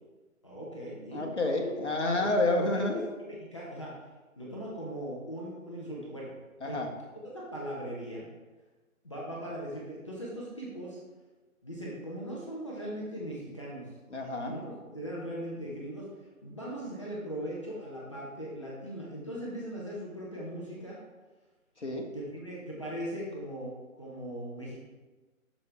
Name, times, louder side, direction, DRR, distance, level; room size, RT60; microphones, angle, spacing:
voice 1, 0.4-1.3 2.1-2.3 2.6-3.9 4.4-6.3 6.6-6.8 7.3-8.3 9.0-11.0 11.6-13.9 14.4-16.1 16.4-21.0 22.1-24.8, equal, 20° left, -5 dB, 1.0 m, -39 dB
voice 2, 1.1-3.0 6.6-6.9 14.1-14.5 21.8-22.1, left 2 dB, 55° left, 1 dB, 1.6 m, -29 dB
12.0 x 5.1 x 3.4 m, 1.2 s
figure-of-eight pair, 155°, 42 cm